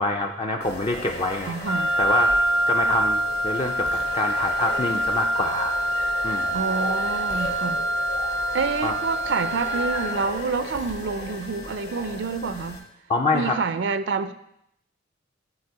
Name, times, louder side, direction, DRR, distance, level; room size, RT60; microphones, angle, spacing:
voice 1, 0.0-1.5 2.0-5.7 6.2-6.6 8.8-9.0 13.1-13.6, left 2 dB, 30° left, 3 dB, 0.4 m, -26 dB
sound 1, 0.6-12.8, left 1 dB, 55° left, 1.8 m, -37 dB
voice 2, 1.4-1.9 6.5-7.8 8.5-12.8 13.3-14.3, right 4 dB, 70° right, 12 dB, 0.4 m, -28 dB
Wind instrument woodwind instrument, 1.6-10.4, right 1 dB, 70° left, 1.1 m, -25 dB
9.6 x 4.3 x 4.6 m, 0.75 s
head